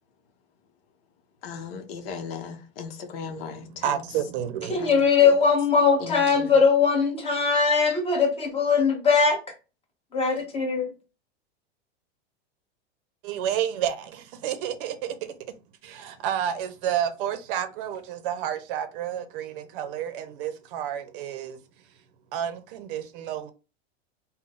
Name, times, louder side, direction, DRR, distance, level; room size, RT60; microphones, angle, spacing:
voice 1, 1.4-4.0 4.7-5.3 6.0-6.6, left 5 dB, 65° left, 0.8 m, -37 dB
voice 2, 3.2-4.9 13.2-15.3 15.8-21.6 22.3-23.5, right 10 dB, 55° right, 0.7 m, -30 dB
voice 3, 4.7-9.4 10.1-10.9, left 5 dB, 15° left, 1.2 m, -20 dB
3.7 x 2.2 x 3.7 m
hypercardioid pair, 125°, 32 cm